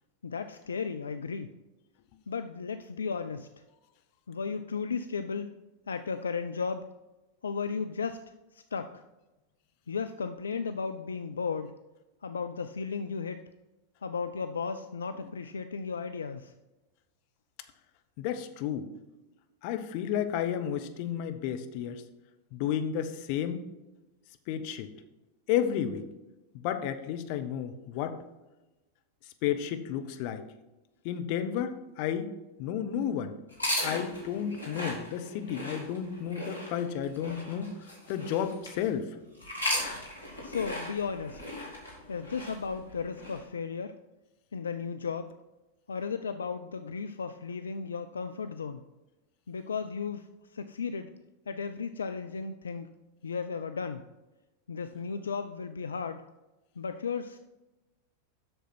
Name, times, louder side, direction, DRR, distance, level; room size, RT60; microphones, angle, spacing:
voice 1, 0.2-1.5 2.3-3.5 4.3-5.5 5.9-6.9 7.4-8.2 8.5-9.0 9.9-11.7 12.2-13.4 14.0-16.5 40.4-41.4 42.1-44.0 44.5-45.3 45.9-48.8 49.5-50.3 50.5-51.1 51.5-52.9 53.2-54.0 54.7-56.2 56.8-57.4, left 5 dB, 70° left, 9 dB, 0.3 m, -35 dB
voice 2, 18.2-18.9 19.6-22.0 22.5-23.6 24.5-24.9 25.5-26.1 26.5-28.2 29.4-30.4 31.0-32.3 32.6-33.4 33.8-37.7 38.1-39.2, left 9 dB, 45° left, 8 dB, 0.8 m, -32 dB
sound 1, 33.5-38.9 39.4-43.4, left 1 dB, 85° left, 2.3 m, -37 dB
7.7 x 6.6 x 4.3 m, 1.0 s
figure-of-eight pair, 90°, 0 cm